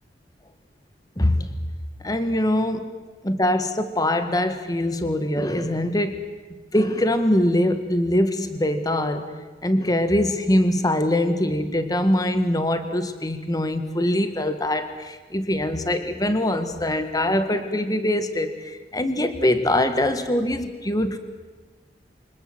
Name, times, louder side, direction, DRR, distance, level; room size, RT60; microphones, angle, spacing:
voice 1, 1.2-1.5 2.0-2.9 3.2-6.2 6.7-9.3 9.6-21.2, left 1 dB, 20° left, 9 dB, 1.8 m, -23 dB
28.5 x 25.5 x 8.0 m, 1.3 s
head